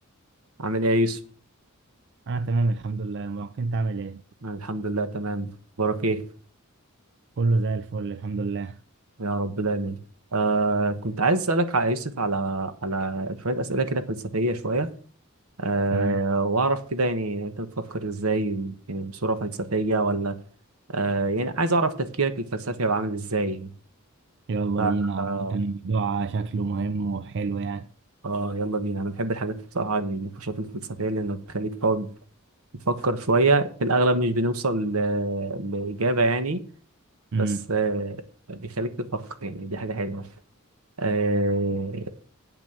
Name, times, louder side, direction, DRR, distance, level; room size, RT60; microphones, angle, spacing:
voice 1, 0.6-1.2 4.4-5.5 5.8-6.2 9.2-10.0 10.3-14.9 15.6-20.4 20.9-23.7 24.8-25.6 28.2-32.1 32.9-36.6 37.4-38.2 38.5-40.3 41.0-42.1, right 2 dB, 80° right, 1.3 m, -26 dB
voice 2, 2.3-4.2 7.4-8.8 15.9-16.2 24.5-27.9 37.3-37.6, right 3 dB, 55° right, 0.5 m, -27 dB
9.1 x 6.1 x 6.9 m
head